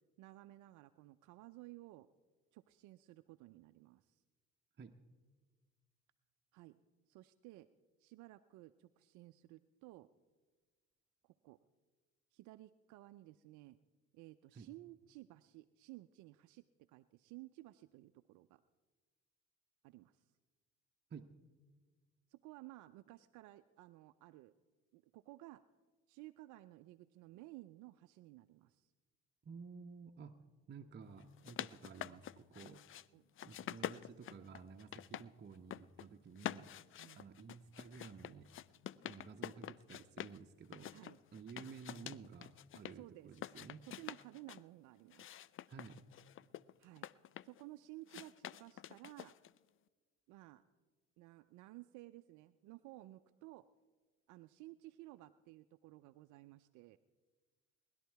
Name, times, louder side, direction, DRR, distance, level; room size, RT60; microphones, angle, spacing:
voice 1, 0.2-2.1 2.5-4.2 6.5-6.8 7.1-7.7 8.0-10.1 11.2-11.6 12.3-13.8 14.1-18.6 19.8-20.2 22.3-24.5 24.9-25.6 26.1-28.9 33.1-33.2 37.0-37.3 40.9-41.2 42.9-43.3 43.8-45.3 46.8-47.1 47.4-49.3 50.3-50.6 51.2-53.6 54.3-57.0, right 18 dB, 65° right, 11 dB, 0.6 m, -56 dB
voice 2, 29.4-30.4 30.7-32.8 33.4-36.7 37.2-41.0 41.3-43.9 45.7-46.0, right 5 dB, 30° right, 3 dB, 1.0 m, -53 dB
sound 1, 31.2-33.0 33.4-35.3 35.5-36.1 36.4-40.4 40.7-42.9 43.3-44.6 45.1-47.6 48.1-49.6, left 11 dB, 40° left, 0.5 m, -47 dB
19.5 x 11.5 x 4.6 m, 1.4 s
hypercardioid pair, 60°, 32 cm